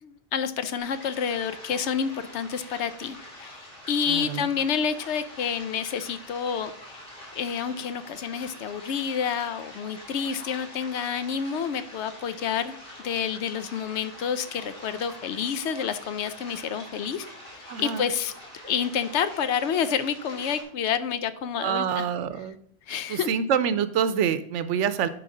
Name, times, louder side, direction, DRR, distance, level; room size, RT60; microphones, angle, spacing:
voice 1, 0.0-7.0 7.3-12.8 13.0-17.3 17.5-18.3 18.7-22.0 22.9-23.3, left 7 dB, 75° left, 12 dB, 0.9 m, -29 dB
sound 1, 0.8-20.6, left 1 dB, 50° left, 3.1 m, -45 dB
voice 2, 4.1-4.5 17.7-18.1 21.6-22.6 23.1-25.1, right 8 dB, 85° right, 12 dB, 0.9 m, -26 dB
11.0 x 4.7 x 3.8 m, 0.65 s
omnidirectional pair, 1.2 m